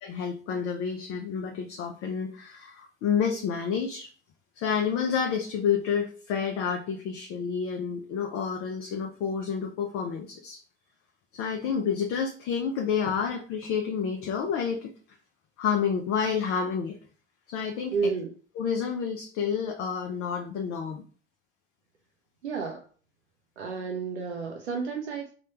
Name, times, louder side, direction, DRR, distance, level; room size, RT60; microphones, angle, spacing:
voice 1, 0.0-4.1 4.6-10.6 11.3-14.9 15.6-17.0 17.5-18.1 18.6-21.0, left 7 dB, 45° left, 2 dB, 0.5 m, -29 dB
voice 2, 17.9-18.3 22.4-22.8 23.6-25.3, right 5 dB, 85° right, 1 dB, 0.5 m, -31 dB
3.2 x 2.2 x 2.9 m, 0.41 s
figure-of-eight pair, 65°, 33 cm